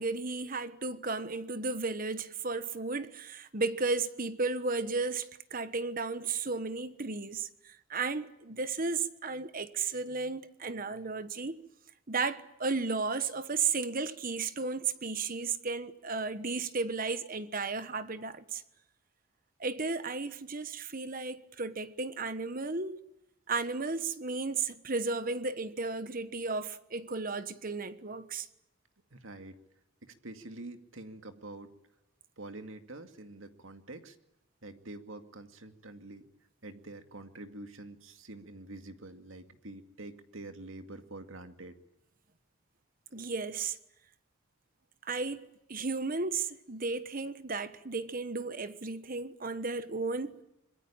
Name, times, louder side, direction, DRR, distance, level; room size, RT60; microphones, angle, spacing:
voice 1, 0.0-11.6 12.1-18.6 19.6-23.0 23.5-28.5 43.1-43.8 45.1-50.3, right 4 dB, 40° right, 1.2 m, -34 dB
voice 2, 29.1-29.6 30.0-31.7 32.4-34.2 34.6-36.3 36.6-41.8, right 2 dB, 70° right, 2.3 m, -46 dB
25.5 x 22.0 x 8.8 m
head